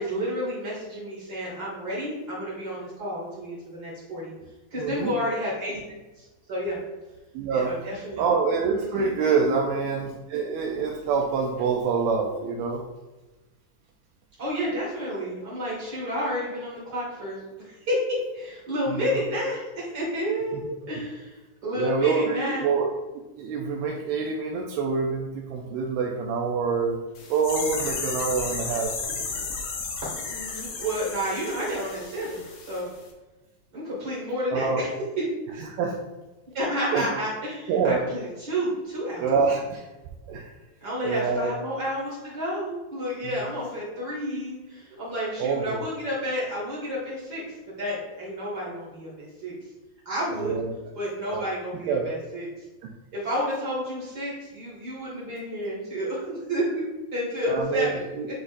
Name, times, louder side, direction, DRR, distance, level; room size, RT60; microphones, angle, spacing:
voice 1, 0.0-4.3 4.7-5.8 6.2-6.8 7.5-8.2 8.7-9.1 14.4-22.7 30.3-32.4 32.7-32.9 33.7-34.9 35.2-35.3 36.5-39.3 40.8-49.5 50.1-50.5 50.9-52.6 53.1-58.0, equal, 35° right, -7 dB, 1.7 m, -30 dB
voice 2, 4.8-5.2 7.3-7.8 8.2-12.8 18.9-19.2 20.5-20.7 21.8-22.9 23.3-27.0 27.3-28.9 34.5-34.8 35.6-36.0 36.9-37.1 37.7-38.0 39.2-39.9 40.3-40.5 41.0-41.5 43.2-43.4 44.9-45.0 45.4-45.8 50.4-50.7 51.3-51.4 51.9-52.1 52.8-52.9 57.5-58.3, right 5 dB, 80° right, 0 dB, 2.3 m, -26 dB
sound 1, 27.1-32.8 33.0-33.1, left 4 dB, 85° left, 1.6 m, -33 dB
9.4 x 4.1 x 2.6 m, 1.1 s
omnidirectional pair, 4.8 m